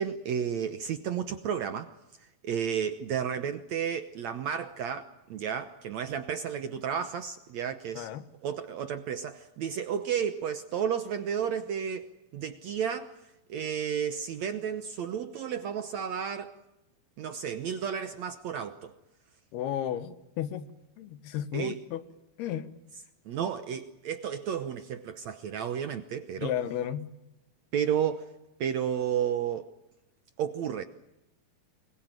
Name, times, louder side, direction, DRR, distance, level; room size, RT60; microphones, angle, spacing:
voice 1, 0.0-1.9 2.4-8.1 8.4-13.1 13.5-16.5 17.2-19.0 21.5-21.8 23.3-26.5 27.7-28.3 28.6-29.7 30.4-30.8, right 8 dB, 70° right, 1.7 m, -32 dB
voice 2, 8.0-8.3 19.5-20.7 21.0-22.0 22.4-22.7 26.4-27.1, left 10 dB, 90° left, 3.4 m, -33 dB
25.0 x 21.5 x 9.1 m
omnidirectional pair, 4.4 m